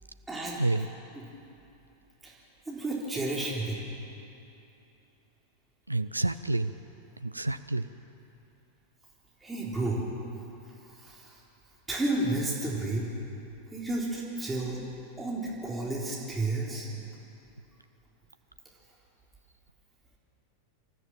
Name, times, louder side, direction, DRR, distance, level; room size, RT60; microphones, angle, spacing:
voice 1, 0.3-0.6 2.2-2.3 2.7-3.8 9.4-10.0 11.0-11.4 11.9-13.1 13.7-14.8 15.2-17.0, right 2 dB, 10° right, -5 dB, 3.8 m, -31 dB
voice 2, 5.9-6.7 7.2-7.8, right 2 dB, 85° right, 11 dB, 0.5 m, -28 dB
27.0 x 14.0 x 7.5 m, 2.8 s
figure-of-eight pair, 90°, 0 cm